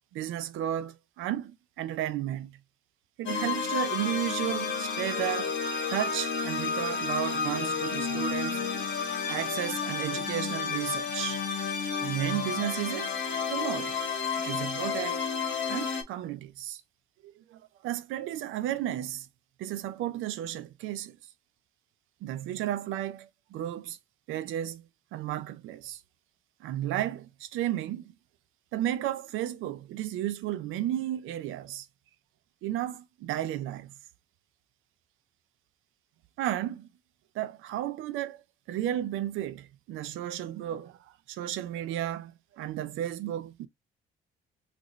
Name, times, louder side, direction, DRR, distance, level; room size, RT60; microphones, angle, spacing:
voice 1, 0.1-2.6 3.2-5.5 5.9-8.7 9.3-11.4 12.0-13.1 13.5-14.0 14.4-15.2 15.7-16.8 17.2-19.3 19.6-21.2 22.2-24.0 24.3-24.8 25.1-26.0 26.6-28.1 28.7-31.9 32.6-33.9 36.4-36.9 37.3-38.4 38.7-43.7, right 12 dB, 90° right, 0.5 m, -33 dB
sound 1, 3.3-16.0, left 5 dB, 70° left, 1.2 m, -31 dB
3.0 x 2.6 x 3.8 m
cardioid pair, 90°, 20 cm